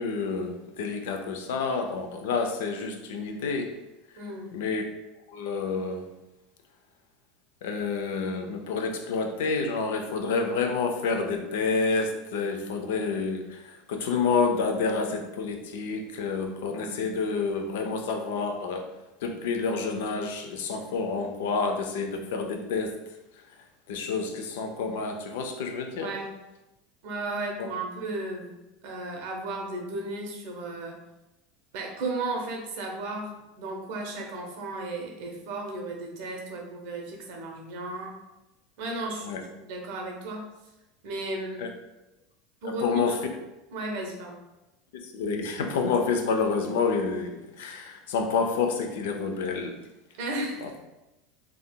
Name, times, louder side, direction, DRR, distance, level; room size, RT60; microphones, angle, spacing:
voice 1, 0.0-3.7 4.5-4.8 5.3-6.0 7.6-18.9 19.2-23.0 23.9-26.1 27.6-27.7 39.2-39.4 41.6-41.7 42.6-43.2 44.9-49.8 50.6-50.7, left 4 dB, 75° left, 5 dB, 0.4 m, -29 dB
voice 2, 4.2-4.5 26.0-26.3 27.0-31.0 31.7-38.1 38.8-40.5 41.0-41.6 42.6-43.2 43.7-44.4 50.2-50.7, right 2 dB, 70° right, 2 dB, 0.7 m, -34 dB
3.5 x 2.3 x 2.2 m, 0.98 s
hypercardioid pair, 95°, 0 cm